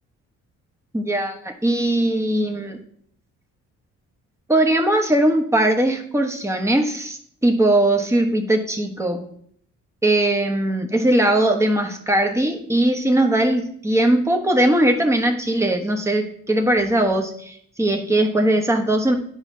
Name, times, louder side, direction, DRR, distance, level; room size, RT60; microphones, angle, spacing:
voice 1, 0.9-2.8 4.5-9.3 10.0-19.2, right 1 dB, 10° right, 3 dB, 1.1 m, -20 dB
10.5 x 4.9 x 2.8 m, 0.62 s
cardioid pair, 90°, 30 cm